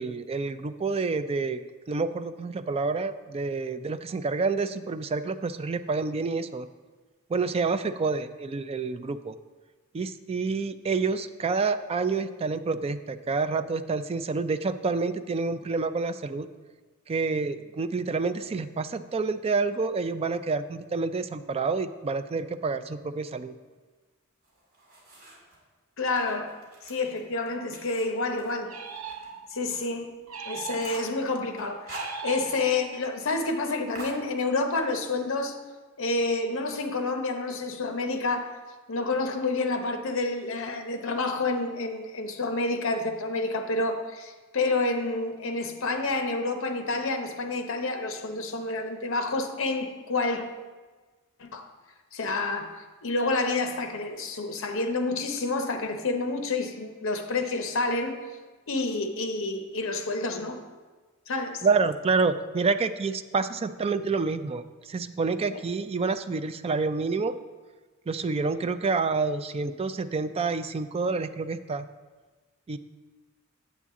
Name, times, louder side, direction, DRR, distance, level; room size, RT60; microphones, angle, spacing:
voice 1, 0.0-1.6 1.9-6.7 7.3-9.3 9.9-16.5 17.1-23.5 61.6-64.6 64.9-67.3 68.1-71.9 72.7-72.8, right 4 dB, 30° right, 11 dB, 0.3 m, -28 dB
sound 1, 24.4-25.6 26.0-29.3 29.6-29.7 30.1-30.2 30.5-31.2 31.6-32.7 32.9-33.0 33.3-33.6 33.9-34.8, right 1 dB, 50° right, 3.0 m, -44 dB
voice 2, 26.0-26.5 26.9-28.7 29.5-30.1 30.5-35.6 36.0-38.6 38.9-50.4 51.4-51.7 52.1-58.2 58.7-60.6 61.3-61.7 65.5-65.6, left 3 dB, 65° left, 6 dB, 0.8 m, -29 dB
sound 2, 28.7-29.7 30.3-31.3 31.9-33.1, right 7 dB, 70° right, 0.7 m, -39 dB
8.4 x 8.1 x 3.7 m, 1.3 s
head